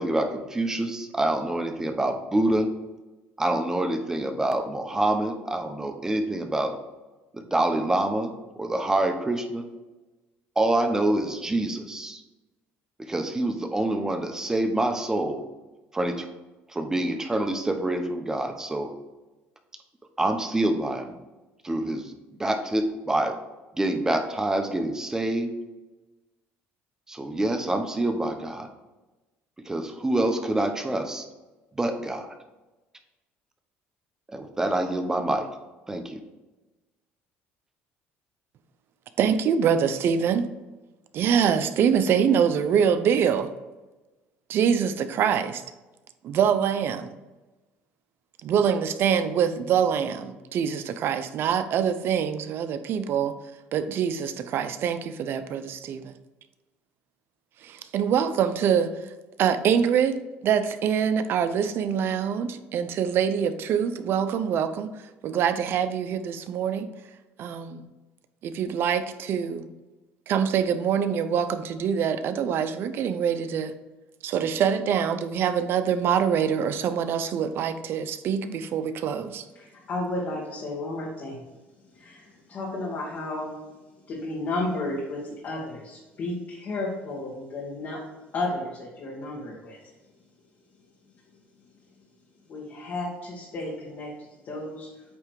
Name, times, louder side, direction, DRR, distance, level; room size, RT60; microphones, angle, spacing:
voice 1, 0.0-2.7 3.4-6.7 7.3-8.3 8.6-9.7 10.6-12.2 13.0-15.4 15.9-16.3 16.7-18.9 20.2-21.2 21.6-22.1 22.4-23.4 23.7-25.5 27.1-28.7 29.6-31.2 31.8-32.3 34.3-35.5 35.9-36.2, right 1 dB, 10° right, 0.9 m, -26 dB
voice 2, 39.2-40.5 41.1-43.5 44.5-45.6 46.2-47.1 48.4-53.3 53.7-56.1 57.6-58.9 59.4-64.9 65.2-66.9 67.4-67.9 68.4-69.7 70.3-73.7 74.2-79.4, right 7 dB, 60° right, 0.6 m, -24 dB
voice 3, 79.5-81.4 81.9-83.6 84.1-88.0 88.3-89.8 92.5-94.9, left 2 dB, 50° left, 1.8 m, -33 dB
8.6 x 3.2 x 4.8 m
cardioid pair, 110°, 4 cm